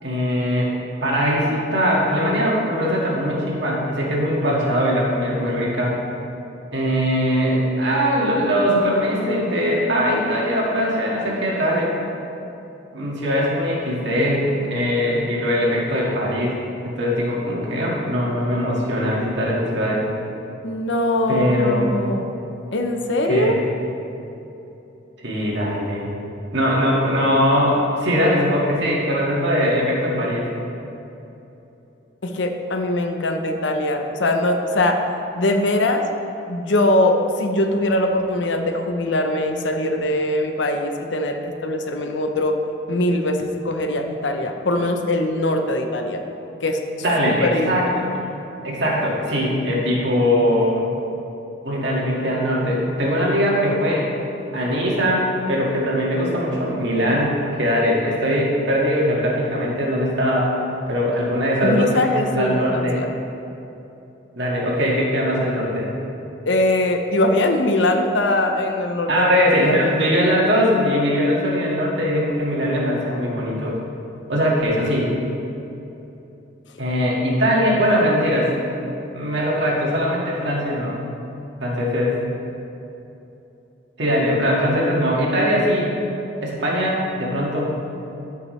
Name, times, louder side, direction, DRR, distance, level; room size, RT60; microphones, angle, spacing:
voice 1, 0.0-0.7 1.0-6.0 6.7-11.9 12.9-16.5 16.8-20.0 21.3-22.1 23.2-23.6 25.2-26.1 26.5-30.5 47.0-48.1 48.6-50.9 51.6-54.1 54.5-60.5 60.9-63.0 64.3-65.9 69.1-73.7 74.3-75.1 76.8-78.5 79.1-81.0 81.6-82.2 84.0-85.9 86.4-87.8, equal, 70° right, -4 dB, 1.8 m, -21 dB
voice 2, 20.6-22.2 22.7-23.5 32.2-35.0 35.4-36.1 36.5-42.6 42.9-46.2 46.6-46.8 47.2-47.9 61.6-63.1 66.4-69.8, left 1 dB, 75° left, 5 dB, 0.7 m, -21 dB
13.5 x 5.7 x 3.2 m, 2.9 s
head